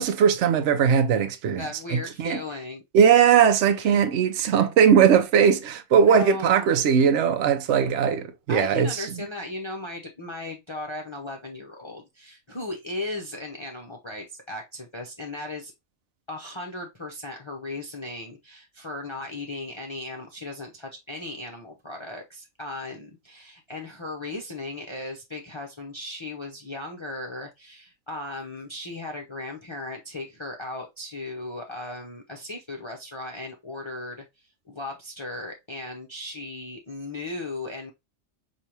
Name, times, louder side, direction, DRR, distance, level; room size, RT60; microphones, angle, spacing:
voice 1, 0.0-2.4 2.9-9.3, right 7 dB, 75° right, 0.9 m, -20 dB
voice 2, 1.5-2.8 3.8-4.0 5.9-6.8 8.5-15.7 16.3-34.2 34.7-37.9, left 2 dB, 30° left, 0.6 m, -36 dB
4.8 x 2.7 x 2.8 m
omnidirectional pair, 1.3 m